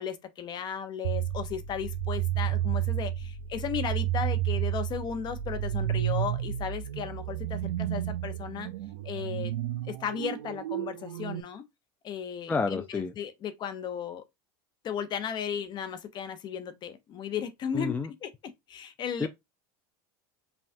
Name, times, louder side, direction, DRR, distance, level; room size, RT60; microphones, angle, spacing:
voice 1, 0.0-8.7 9.0-9.5 9.9-11.6 12.0-14.2 14.8-18.3 18.7-19.3, left 8 dB, 40° left, 0.8 m, -35 dB
sound 1, 1.0-11.4, right 12 dB, 85° right, 0.4 m, -31 dB
voice 2, 12.5-13.1 17.7-18.1 19.2-19.3, left 4 dB, 15° left, 0.4 m, -29 dB
5.6 x 2.4 x 2.6 m
supercardioid pair, 110°, 12 cm